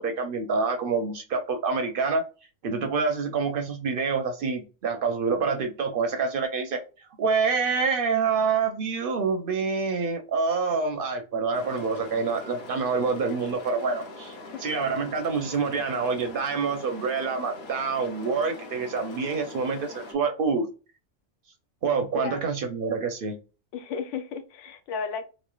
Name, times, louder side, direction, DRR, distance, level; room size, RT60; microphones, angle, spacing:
voice 1, 0.0-2.2 2.6-6.8 7.2-14.3 14.6-20.7 21.8-23.4, right 4 dB, 60° right, 0.6 m, -27 dB
sound 1, 11.5-20.1, left 2 dB, 65° left, 0.9 m, -42 dB
voice 2, 22.1-22.6 23.7-25.2, left 5 dB, 90° left, 0.9 m, -34 dB
3.1 x 2.1 x 2.3 m
omnidirectional pair, 1.2 m